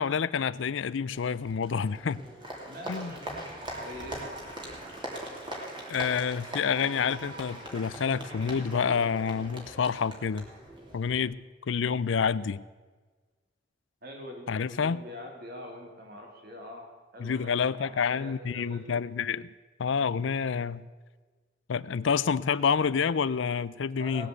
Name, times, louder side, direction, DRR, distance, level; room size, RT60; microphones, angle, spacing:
voice 1, 0.0-2.3 2.9-3.1 5.9-10.5 10.9-11.4 11.7-12.6 14.5-15.0 17.2-19.5 19.8-20.9 21.7-24.3, left 6 dB, 75° left, 0.5 m, -28 dB
Applause, 1.1-11.2, right 1 dB, 25° right, 2.6 m, -41 dB
voice 2, 2.6-3.5 3.8-4.3 14.0-19.1 24.0-24.3, left 1 dB, 50° right, 2.7 m, -44 dB
18.5 x 7.8 x 8.1 m
head